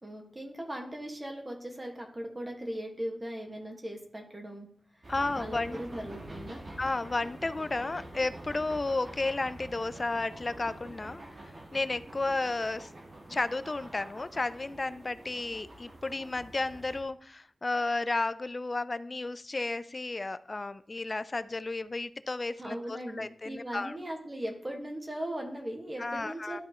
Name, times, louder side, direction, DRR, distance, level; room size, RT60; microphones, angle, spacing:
voice 1, 0.0-4.7 5.3-6.6 22.6-26.6, right 1 dB, 30° right, 1 dB, 1.7 m, -39 dB
sound 1, 5.0-17.0, right 1 dB, 50° right, 1.7 m, -46 dB
voice 2, 5.1-5.8 6.8-11.2 11.7-12.9 13.3-24.0 26.0-26.6, left 2 dB, 40° left, 14 dB, 0.4 m, -33 dB
12.0 x 4.2 x 3.1 m, 0.63 s
cardioid pair, 55°, 0 cm